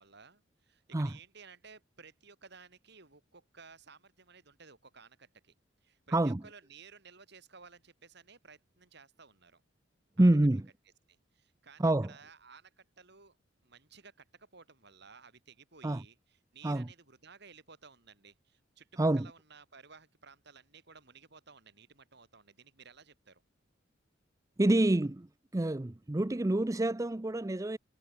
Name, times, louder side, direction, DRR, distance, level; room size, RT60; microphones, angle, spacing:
voice 1, 0.0-5.5 5.8-9.6 10.2-10.3 11.1-13.4 13.6-23.4, right 5 dB, 60° right, 3.9 m, -56 dB
voice 2, 6.1-6.4 10.2-10.7 11.8-12.1 15.8-16.0 16.6-16.9 19.0-19.3 24.6-25.3 25.5-27.8, right 1 dB, 15° right, 0.5 m, -27 dB
head